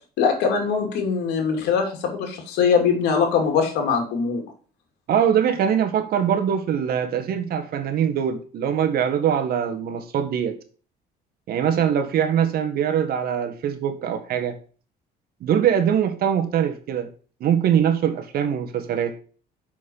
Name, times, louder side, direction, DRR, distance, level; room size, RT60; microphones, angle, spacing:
voice 1, 0.2-4.4, left 6 dB, 90° left, 3 dB, 2.7 m, -22 dB
voice 2, 5.1-10.6 11.5-14.6 15.4-17.1 17.4-19.1, right 8 dB, 65° right, 8 dB, 1.6 m, -22 dB
6.6 x 6.2 x 7.0 m, 0.41 s
cardioid pair, 110°, 17 cm